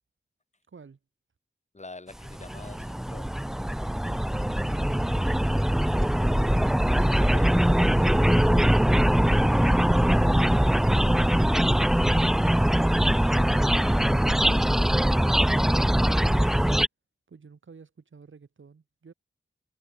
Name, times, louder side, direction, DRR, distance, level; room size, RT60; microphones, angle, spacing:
voice 1, 0.7-1.0 17.3-19.1, right 5 dB, 75° right, 6.8 m, -50 dB
voice 2, 1.7-3.3 7.0-8.4, left 2 dB, 35° left, 3.1 m, -46 dB
sound 1, 2.3-16.9, equal, ahead, 0.3 m, -22 dB
cardioid pair, 50°, 20 cm